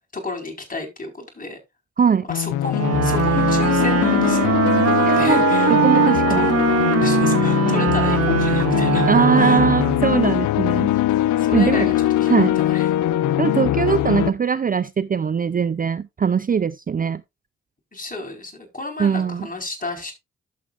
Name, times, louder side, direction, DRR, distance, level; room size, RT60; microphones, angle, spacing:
voice 1, 0.1-1.6 2.3-5.7 6.3-6.6 7.0-9.1 9.4-9.6 11.4-12.9 17.9-20.1, left 2 dB, 30° left, 4.8 m, -32 dB
voice 2, 2.0-2.3 5.1-5.4 5.7-6.5 9.1-10.9 11.5-11.9 12.3-12.5 13.4-17.2 19.0-19.5, right 6 dB, 30° right, 0.5 m, -21 dB
sound 1, 2.3-14.3, left 13 dB, 90° left, 0.6 m, -21 dB
Wind instrument woodwind instrument, 2.7-10.2, right 9 dB, 55° right, 0.8 m, -21 dB
12.0 x 7.5 x 2.5 m
supercardioid pair, 50°, 29 cm